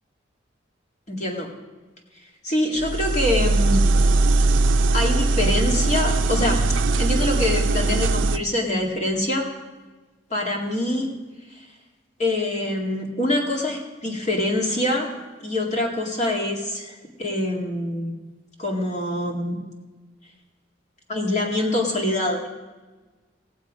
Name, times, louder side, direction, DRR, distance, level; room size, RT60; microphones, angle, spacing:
voice 1, 1.1-1.5 2.4-3.8 4.9-6.6 7.0-9.5 10.3-11.1 12.2-15.1 15.4-18.1 18.6-19.6 21.1-22.5, left 1 dB, 35° left, 0 dB, 2.0 m, -24 dB
sound 1, 2.8-8.4, right 3 dB, 75° right, 0.5 m, -20 dB
18.5 x 7.2 x 5.1 m, 1.3 s
head